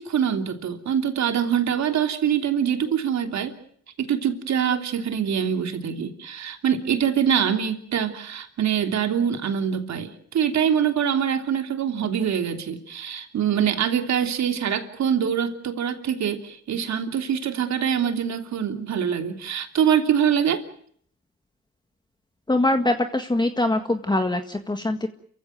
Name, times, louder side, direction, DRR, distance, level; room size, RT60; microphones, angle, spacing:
voice 1, 0.0-3.5 4.0-20.6, right 8 dB, 65° right, 6 dB, 3.2 m, -24 dB
voice 2, 22.5-25.1, left 2 dB, 15° left, 6 dB, 1.7 m, -23 dB
29.0 x 15.5 x 9.4 m, 0.63 s
cardioid pair, 90°, 30 cm